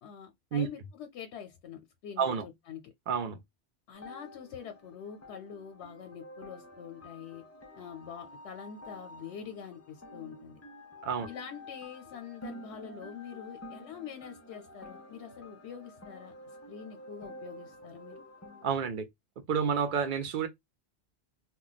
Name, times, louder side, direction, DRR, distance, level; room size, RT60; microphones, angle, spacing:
voice 1, 0.0-2.9 3.9-7.4 7.8-10.6 11.3-16.3 16.7-18.2, left 8 dB, 90° left, 0.9 m, -45 dB
voice 2, 3.1-3.4 11.0-11.3 18.6-19.0 19.5-20.5, right 6 dB, 55° right, 0.7 m, -29 dB
sound 1, 3.9-18.7, left 1 dB, 25° left, 0.3 m, -49 dB
2.2 x 2.2 x 3.9 m
omnidirectional pair, 1.1 m